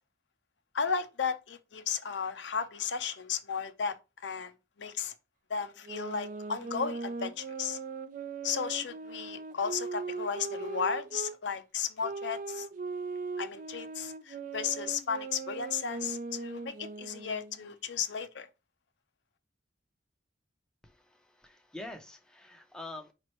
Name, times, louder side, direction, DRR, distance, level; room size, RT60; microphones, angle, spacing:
voice 1, 0.7-5.1 5.5-7.8 8.4-12.7 13.4-18.5, left 6 dB, 70° left, 0.6 m, -34 dB
sound 1, 5.8-11.4 12.0-17.6, right 4 dB, 45° right, 0.4 m, -39 dB
voice 2, 20.8-23.1, left 2 dB, 5° left, 0.6 m, -46 dB
5.0 x 3.2 x 3.0 m
head